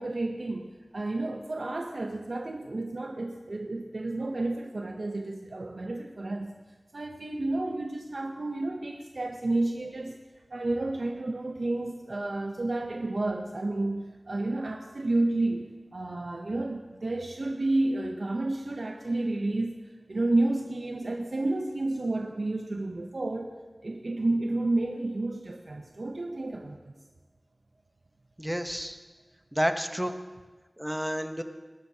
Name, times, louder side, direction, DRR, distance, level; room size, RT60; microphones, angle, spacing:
voice 1, 0.0-6.6 6.9-10.2 10.5-15.7 15.9-19.8 20.1-23.5 23.8-26.9, right 2 dB, 75° right, 3 dB, 0.7 m, -31 dB
voice 2, 28.4-29.0 29.5-30.1 30.8-31.4, equal, 10° right, 7 dB, 0.9 m, -30 dB
19.5 x 12.0 x 2.8 m, 1.3 s
wide cardioid pair, 60°, 0 cm